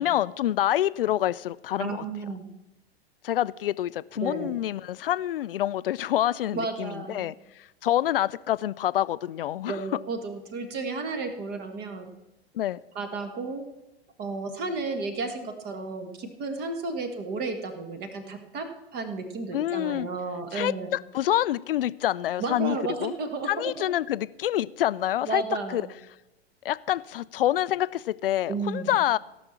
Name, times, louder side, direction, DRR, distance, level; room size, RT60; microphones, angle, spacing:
voice 1, 0.0-2.0 3.2-7.3 7.8-9.8 12.5-12.8 19.5-20.1 20.5-23.1 23.5-25.4 25.7-25.8 26.6-29.2, left 12 dB, 60° left, 0.5 m, -27 dB
voice 2, 1.8-2.5 4.2-4.6 6.5-7.3 9.7-12.1 12.9-13.6 14.2-20.9 22.4-23.9 25.2-25.9 28.5-28.9, right 3 dB, 30° right, 1.5 m, -33 dB
15.0 x 6.1 x 7.0 m
figure-of-eight pair, 95°, 32 cm